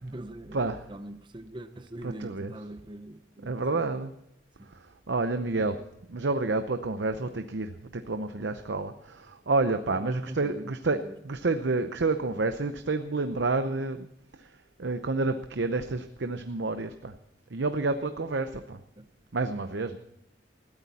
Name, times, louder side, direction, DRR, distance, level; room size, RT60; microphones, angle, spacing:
voice 1, 0.0-0.6 0.9-3.8 4.6-4.7 7.2-7.3 9.7-11.1 19.0-19.1, right 1 dB, 25° right, 10 dB, 0.7 m, -43 dB
voice 2, 0.5-0.8 2.0-2.5 3.4-4.1 4.7-5.8 6.1-11.0 11.2-14.1 14.3-17.2 17.5-18.8 19.3-20.0, right 3 dB, 70° right, 9 dB, 0.7 m, -29 dB
20.0 x 13.5 x 4.2 m, 0.80 s
head